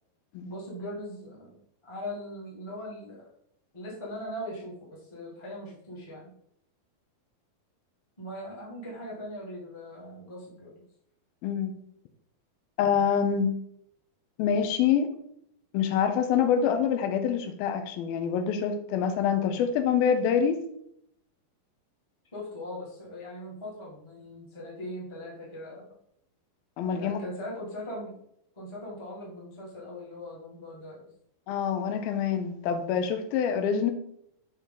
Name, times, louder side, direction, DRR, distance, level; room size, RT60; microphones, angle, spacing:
voice 1, 0.4-1.6 1.8-3.3 3.7-6.3 8.2-10.8 22.3-25.8 26.8-28.2 28.5-31.0, left 1 dB, 15° left, 0.9 m, -40 dB
voice 2, 11.4-11.7 12.8-13.6 14.4-15.1 15.7-20.6 26.8-27.2 31.5-33.9, left 7 dB, 85° left, 2.6 m, -26 dB
6.6 x 4.8 x 3.8 m
omnidirectional pair, 4.2 m